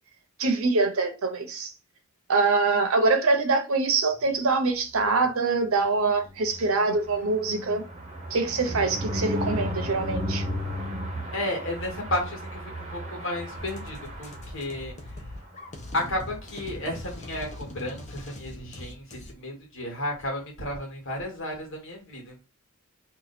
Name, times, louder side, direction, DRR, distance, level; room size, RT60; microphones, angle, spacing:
voice 1, 0.4-1.7 2.3-7.8 8.3-10.4, right 3 dB, 70° right, 0.7 m, -24 dB
sound 1, 6.1-14.9 15.4-15.5 15.8-15.9 16.2-16.4, equal, 30° right, 0.7 m, -34 dB
voice 2, 11.3-14.9 15.9-22.4, left 1 dB, 60° left, 1.5 m, -33 dB
sound 2, 13.5-19.3, left 1 dB, 35° left, 0.6 m, -41 dB
2.9 x 2.3 x 4.1 m
head